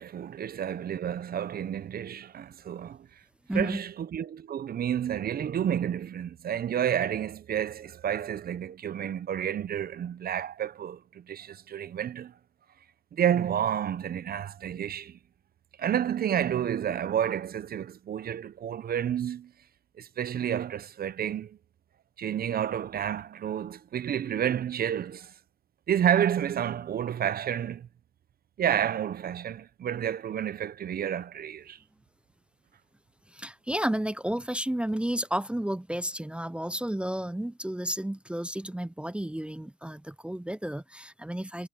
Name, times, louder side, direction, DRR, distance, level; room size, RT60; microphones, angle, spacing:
voice 1, 0.0-3.1 3.5-12.3 13.1-15.2 15.8-19.5 20.0-21.6 22.2-25.3 25.9-27.9 28.6-31.8, right 9 dB, 50° right, 0.7 m, -30 dB
voice 2, 3.5-3.8 33.3-41.7, right 1 dB, 5° right, 0.5 m, -32 dB
cardioid pair, 90°, 20 cm